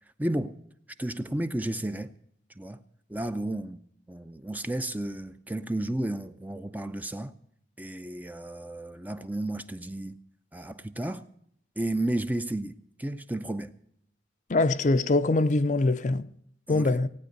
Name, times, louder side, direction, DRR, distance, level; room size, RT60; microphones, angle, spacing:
voice 1, 0.2-0.6 1.0-2.1 2.5-2.8 3.1-7.3 7.8-10.2 10.5-11.3 11.8-13.7 16.7-17.0, right 1 dB, 10° right, 0.5 m, -32 dB
voice 2, 14.5-16.3 16.7-17.1, left 2 dB, 45° left, 0.5 m, -23 dB
18.0 x 9.3 x 6.5 m
head